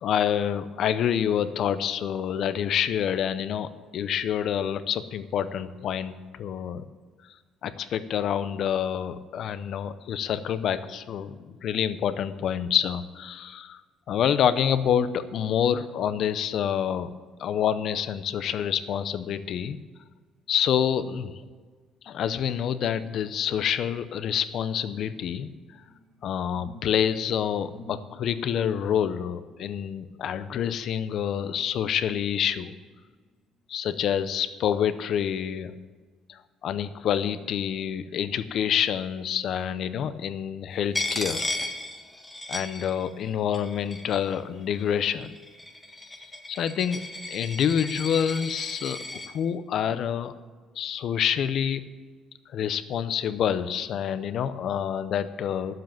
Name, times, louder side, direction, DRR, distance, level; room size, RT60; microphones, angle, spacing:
voice 1, 0.0-6.9 7.6-13.8 14.1-19.8 20.5-21.3 22.0-25.5 26.2-32.7 33.7-35.8 36.3-41.5 42.5-45.3 46.5-50.3 50.8-51.8 52.5-55.8, left 9 dB, 50° left, 13 dB, 0.6 m, -27 dB
sound 1, 25.8-31.5 32.0-33.1 33.6-33.8, left 1 dB, 70° right, 3.0 m, -52 dB
Coin (dropping), 40.9-43.3 43.5-44.4 45.1-49.3, left 2 dB, 10° left, 1.3 m, -35 dB
11.5 x 7.7 x 7.4 m, 1.5 s
cardioid pair, 155°, 0 cm